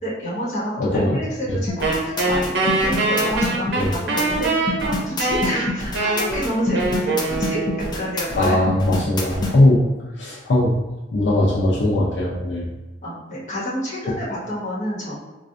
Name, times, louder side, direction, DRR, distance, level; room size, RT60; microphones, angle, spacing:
voice 1, 0.0-8.7 13.0-15.2, equal, 45° left, -8 dB, 1.3 m, -28 dB
sound 1, 1.7-9.5, left 2 dB, 25° left, 0.5 m, -27 dB
Wind instrument woodwind instrument, 1.8-8.1, right 2 dB, 65° right, 0.6 m, -23 dB
voice 2, 8.4-9.8 10.2-10.7 11.1-12.7, left 1 dB, 80° left, -6 dB, 0.6 m, -19 dB
4.1 x 2.3 x 2.5 m, 1.1 s
head